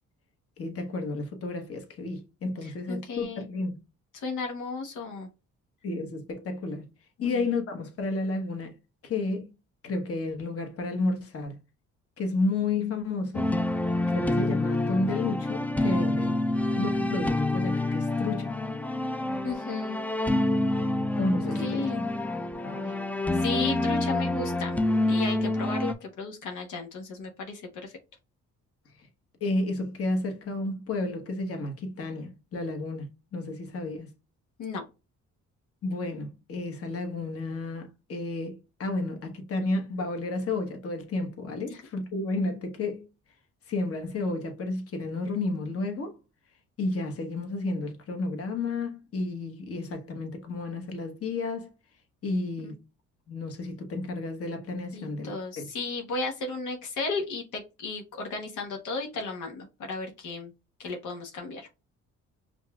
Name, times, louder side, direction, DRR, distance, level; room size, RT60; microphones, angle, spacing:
voice 1, 0.6-3.8 5.8-6.9 7.2-8.7 9.0-9.5 9.8-11.6 12.2-13.6 14.1-16.4 16.7-18.6 21.2-22.1 22.6-23.0 29.4-34.1 35.8-43.1 43.7-46.1 46.8-51.7 52.2-52.8 53.3-55.7, left 2 dB, 50° left, 1.2 m, -31 dB
voice 2, 2.6-3.4 4.1-5.3 7.2-7.4 19.4-20.0 21.4-22.0 22.8-23.0 23.3-27.9 34.6-34.8 41.7-41.8 52.6-52.7 54.9-60.5 60.8-61.7, left 3 dB, 85° left, 1.1 m, -35 dB
sound 1, 13.3-25.9, left 2 dB, 5° left, 0.3 m, -27 dB
5.2 x 2.5 x 2.3 m
cardioid pair, 90°, 30 cm